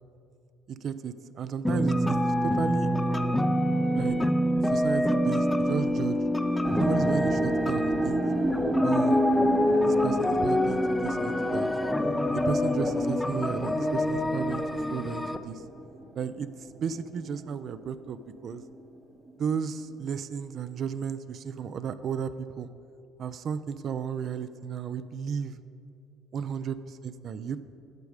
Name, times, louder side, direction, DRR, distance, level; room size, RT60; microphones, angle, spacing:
voice 1, 0.7-2.2 2.4-2.9 3.9-4.2 4.7-6.2 6.8-8.2 8.8-9.3 9.8-11.7 12.3-15.6 16.1-16.5 16.7-18.6 19.4-22.7 23.2-25.6 26.3-26.8 27.0-27.6, right 7 dB, 55° right, 13 dB, 0.4 m, -33 dB
sound 1, 1.6-15.4, left 1 dB, 10° left, 0.4 m, -26 dB
sound 2, 6.6-17.8 18.1-18.7 19.3-19.4, right 1 dB, 25° right, 0.7 m, -32 dB
8.2 x 5.2 x 4.9 m, 2.5 s
supercardioid pair, 75°, 0 cm